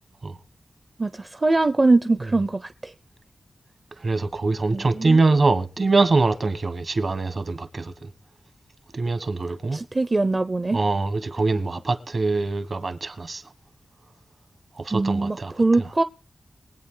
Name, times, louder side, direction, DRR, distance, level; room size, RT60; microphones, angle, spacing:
voice 1, 1.0-2.9 4.7-5.2 9.7-10.8 14.9-16.0, right 2 dB, 30° right, 0.6 m, -22 dB
voice 2, 4.0-7.9 8.9-9.8 10.7-13.4 14.8-15.5, right 3 dB, 50° right, 1.3 m, -23 dB
22.5 x 8.5 x 3.8 m
wide cardioid pair, 115°, 0 cm